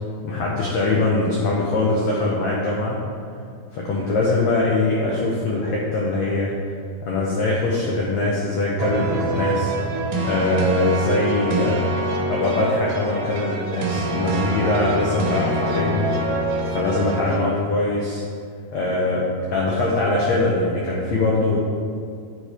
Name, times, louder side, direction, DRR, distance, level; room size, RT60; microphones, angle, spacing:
voice 1, 0.2-3.0 3.7-6.5 7.0-9.7 10.2-11.8 12.3-18.2 18.7-21.6, left 2 dB, 90° left, -4 dB, 1.5 m, -22 dB
sound 1, 8.8-17.4, right 1 dB, 85° right, 2.9 m, -25 dB
9.8 x 4.9 x 4.3 m, 2.2 s
omnidirectional pair, 4.4 m